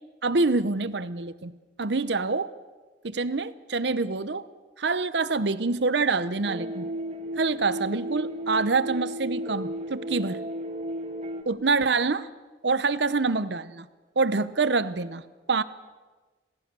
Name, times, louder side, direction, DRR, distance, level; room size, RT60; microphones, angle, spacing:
voice 1, 0.2-1.5 1.8-2.5 3.0-4.4 4.8-6.9 7.4-10.4 11.5-12.3 12.6-13.9 14.2-15.2 15.5-15.6, right 3 dB, 65° right, 15 dB, 0.9 m, -26 dB
sound 1, 6.4-11.4, equal, 35° right, 2.0 m, -33 dB
27.5 x 17.5 x 7.0 m, 1.3 s
head